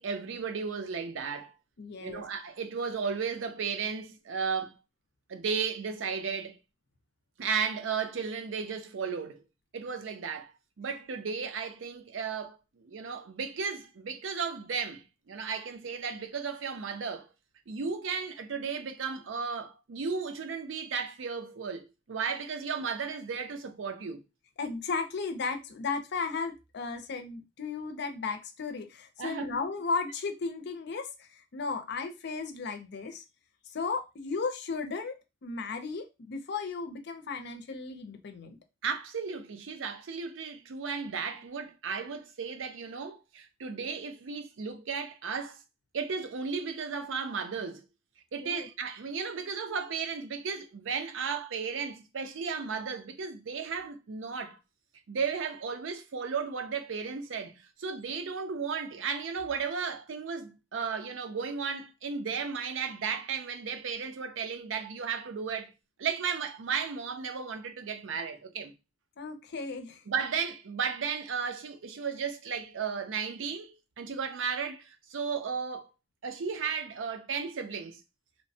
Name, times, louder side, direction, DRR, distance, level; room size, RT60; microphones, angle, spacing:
voice 1, 0.0-1.5 2.0-4.7 5.3-6.6 7.4-9.4 9.7-10.5 10.8-17.3 17.7-24.2 29.2-29.6 38.8-45.6 45.9-47.8 48.3-54.6 55.1-65.7 66.0-68.7 70.1-75.9 76.2-78.0, right 5 dB, 90° right, 0.5 m, -34 dB
voice 2, 1.8-2.2 24.6-33.2 33.7-38.6 48.4-48.7 69.2-70.0, left 4 dB, 60° left, 0.5 m, -35 dB
3.1 x 2.1 x 2.6 m
head